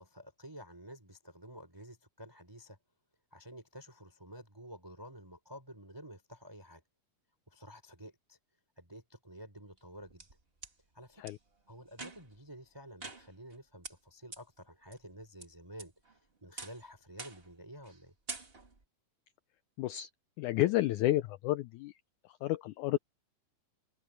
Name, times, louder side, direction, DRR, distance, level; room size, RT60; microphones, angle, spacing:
voice 1, 0.0-2.8 3.3-6.8 7.5-8.4 8.8-10.3 10.9-11.2 11.7-15.9 16.4-18.1, equal, 5° right, 3.7 m, -51 dB
sound 1, 9.8-10.7 11.3-11.4 11.9-12.4 13.0-13.6 13.8-13.9 14.3-14.4 14.9-15.4 15.8-16.2 16.6-16.8 17.2-17.5 17.8-18.0 18.3-18.8, right 3 dB, 25° right, 1.4 m, -46 dB
voice 2, 19.8-20.1 20.4-22.0 22.3-23.0, left 15 dB, 85° left, 1.7 m, -31 dB
omnidirectional pair, 4.1 m